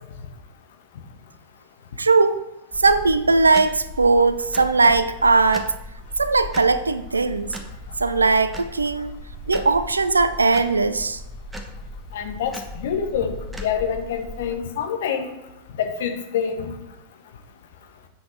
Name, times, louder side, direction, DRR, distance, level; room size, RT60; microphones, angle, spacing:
voice 1, 2.0-2.4 2.8-5.7 6.2-7.5 8.0-9.1 9.5-11.2, right 3 dB, 80° right, 12 dB, 0.5 m, -19 dB
sound 1, 2.7-14.5, left 1 dB, 5° right, 1.1 m, -38 dB
voice 2, 12.1-15.3 15.8-16.7, left 7 dB, 60° left, 6 dB, 1.2 m, -26 dB
7.9 x 6.4 x 5.0 m, 0.99 s
figure-of-eight pair, 90°, 0 cm